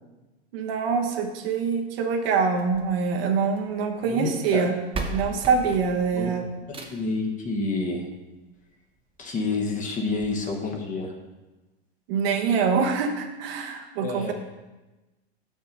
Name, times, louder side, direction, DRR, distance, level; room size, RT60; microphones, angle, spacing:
voice 1, 0.5-4.7 5.1-6.4 12.1-14.3, right 5 dB, 60° right, 4 dB, 1.1 m, -25 dB
sound 1, 2.6-3.8 4.6-4.7 4.9-7.2 8.6-8.7 9.1-9.2 9.5-9.6 10.2-10.3, right 3 dB, 15° right, 0.7 m, -36 dB
voice 2, 4.1-4.7 6.1-6.3 6.7-8.0 9.2-11.1 14.0-14.3, left 3 dB, 25° left, 2 dB, 1.1 m, -29 dB
6.5 x 5.5 x 5.2 m, 1.1 s
hypercardioid pair, 120°, 33 cm